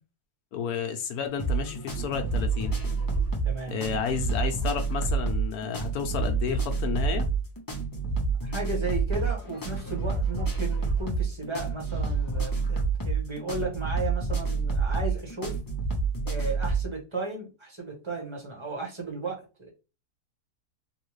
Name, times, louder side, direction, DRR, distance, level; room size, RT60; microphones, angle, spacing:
voice 1, 0.5-2.8 3.7-7.3, left 6 dB, 70° left, 1.1 m, -31 dB
sound 1, 1.4-16.9, right 4 dB, 20° left, 0.6 m, -28 dB
voice 2, 3.4-3.8 8.4-15.6 16.2-19.7, right 3 dB, 20° right, 1.0 m, -35 dB
3.5 x 2.4 x 3.1 m
omnidirectional pair, 1.7 m